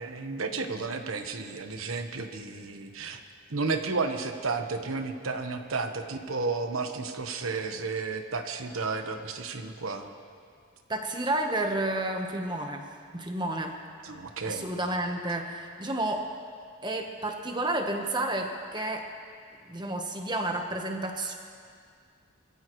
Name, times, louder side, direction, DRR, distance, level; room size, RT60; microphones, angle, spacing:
voice 1, 0.0-3.2 3.5-10.1 14.0-14.7, right 4 dB, 85° right, 6 dB, 1.2 m, -32 dB
voice 2, 10.9-12.9 13.1-13.8 14.5-16.3 16.8-19.1 19.7-21.3, right 1 dB, 20° right, 3 dB, 1.1 m, -31 dB
25.0 x 15.0 x 3.2 m, 2.2 s
head